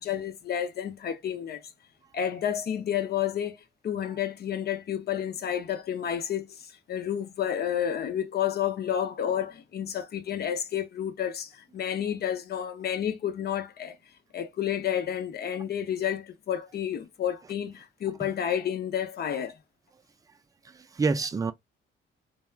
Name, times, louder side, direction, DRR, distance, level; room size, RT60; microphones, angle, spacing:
voice 1, 0.0-1.6 2.1-3.6 3.8-14.0 14.3-19.6, left 9 dB, 55° left, 0.7 m, -30 dB
voice 2, 20.6-21.5, right 4 dB, 20° right, 0.3 m, -28 dB
3.2 x 2.1 x 2.3 m
cardioid pair, 90°, 20 cm